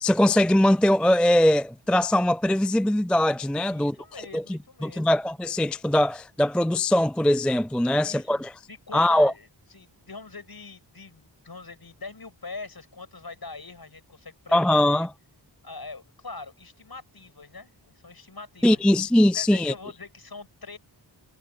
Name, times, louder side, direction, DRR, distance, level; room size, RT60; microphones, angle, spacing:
voice 1, 0.0-4.0 4.3-8.5 8.9-9.3 14.5-15.1 18.6-19.7, left 1 dB, 5° left, 0.3 m, -21 dB
voice 2, 3.5-5.1 7.9-8.4 8.7-9.5 9.7-15.1 15.6-20.8, left 3 dB, 55° left, 7.9 m, -43 dB
cardioid pair, 40°, 44 cm